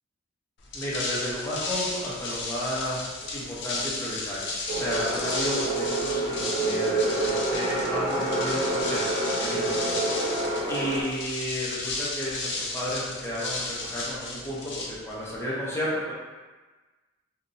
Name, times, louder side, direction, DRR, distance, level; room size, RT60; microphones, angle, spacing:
sound 1, 0.6-15.4, left 2 dB, 65° left, 0.4 m, -34 dB
voice 1, 0.7-3.0 3.3-9.0 9.4-9.7 10.3-10.4 10.7-16.1, equal, 15° left, -8 dB, 0.6 m, -32 dB
sound 2, 4.7-11.0, right 2 dB, 35° right, 0.5 m, -28 dB
2.8 x 2.0 x 2.5 m, 1.3 s
head